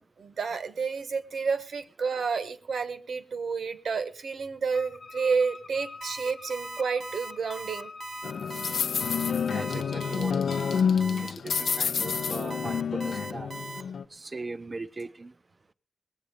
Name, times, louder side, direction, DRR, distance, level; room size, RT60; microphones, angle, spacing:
voice 1, 0.0-7.9, right 5 dB, 65° right, 10 dB, 1.1 m, -30 dB
Wind instrument woodwind instrument, 4.7-10.2, left 3 dB, 35° left, 0.8 m, -45 dB
Alarm, 6.0-13.8, right 3 dB, 50° right, 0.8 m, -40 dB
sound 1, 8.2-14.0, left 6 dB, 85° left, 0.5 m, -28 dB
voice 2, 9.4-10.7 11.4-13.6 14.1-15.3, right 3 dB, 25° right, 15 dB, 0.5 m, -39 dB
19.5 x 8.0 x 5.3 m, 0.43 s
wide cardioid pair, 165°, 0 cm